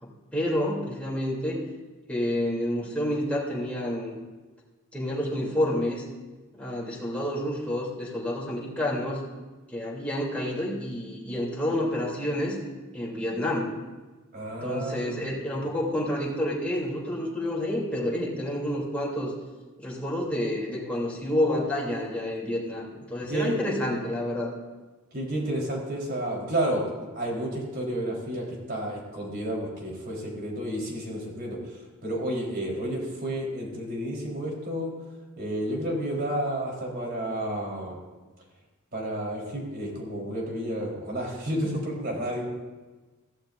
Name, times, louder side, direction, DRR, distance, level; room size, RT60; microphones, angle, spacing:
voice 1, 0.0-1.6 2.1-4.2 4.9-6.0 6.5-9.2 9.7-12.6 12.9-13.7 14.6-19.3 19.8-24.5, left 1 dB, 5° left, -5 dB, 3.1 m, -29 dB
voice 2, 14.3-15.6 23.3-23.7 25.1-31.6 32.0-34.9 35.4-38.0 38.9-42.5, right 1 dB, 50° right, -2 dB, 4.1 m, -31 dB
21.5 x 14.5 x 2.6 m, 1.3 s
head